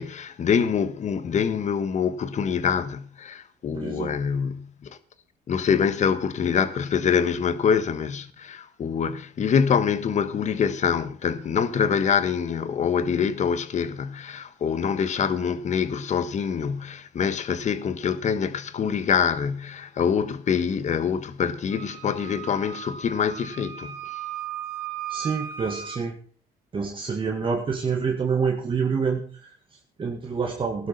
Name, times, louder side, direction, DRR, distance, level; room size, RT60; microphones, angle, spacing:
voice 1, 0.0-5.0 5.5-24.2, left 7 dB, 45° left, 1.4 m, -25 dB
voice 2, 3.7-4.2 25.1-26.2 26.7-30.9, right 5 dB, 30° right, 1.9 m, -27 dB
Wind instrument woodwind instrument, 21.7-26.0, right 9 dB, 65° right, 2.5 m, -36 dB
16.5 x 12.0 x 4.2 m
cardioid pair, 110°, 17 cm